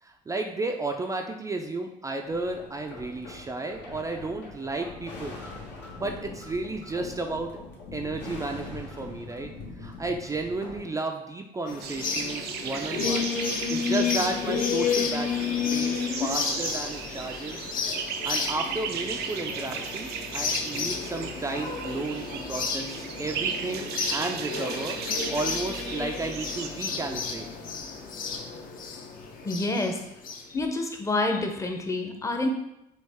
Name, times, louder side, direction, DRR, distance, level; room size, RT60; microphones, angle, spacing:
voice 1, 0.0-5.4 5.8-7.5 7.9-9.5 9.8-13.3 13.7-17.7 18.2-27.5, right 2 dB, 20° right, 3 dB, 0.4 m, -33 dB
sound 1, 2.3-10.8, left 3 dB, 85° left, 1.4 m, -42 dB
sound 2, 11.7-30.4, left 5 dB, 55° left, 0.7 m, -31 dB
sound 3, 11.8-26.7, right 7 dB, 75° right, 0.5 m, -36 dB
voice 2, 29.4-30.0 30.5-32.5, left 2 dB, 20° left, 4 dB, 0.7 m, -28 dB
6.2 x 2.4 x 3.5 m, 0.84 s
cardioid pair, 110°, 17 cm